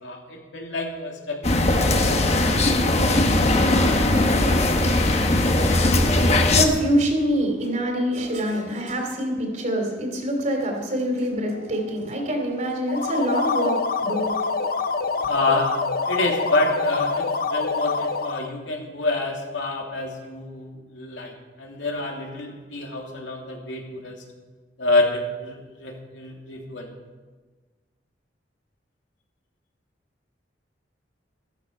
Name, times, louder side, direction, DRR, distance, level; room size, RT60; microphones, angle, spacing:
voice 1, 0.0-2.4 15.3-15.7 16.0-24.2 24.8-26.9, left 2 dB, 90° left, 0 dB, 2.9 m, -28 dB
sound 1, 1.4-6.6, left 2 dB, 35° left, 1.1 m, -19 dB
voice 2, 6.4-15.3, equal, 40° right, 2 dB, 3.2 m, -25 dB
sound 2, 12.8-18.5, left 4 dB, 50° left, 0.7 m, -26 dB
14.5 x 13.0 x 5.5 m, 1.4 s
head